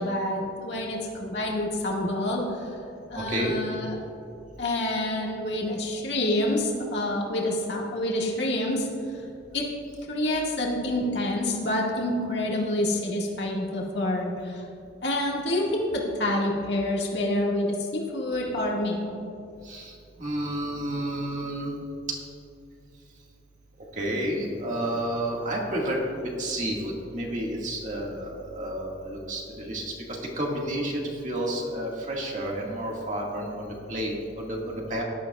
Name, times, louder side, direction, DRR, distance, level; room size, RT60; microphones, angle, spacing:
voice 1, 0.0-2.7 3.1-4.0 4.6-8.9 9.5-9.7 10.1-14.6 15.0-19.0, left 1 dB, 65° left, -3 dB, 1.9 m, -27 dB
voice 2, 3.2-3.5 19.6-19.9 20.2-21.7 22.1-22.2 24.0-26.0 26.4-35.0, right 1 dB, 40° right, -2 dB, 1.9 m, -30 dB
17.5 x 12.0 x 2.4 m, 2.6 s
head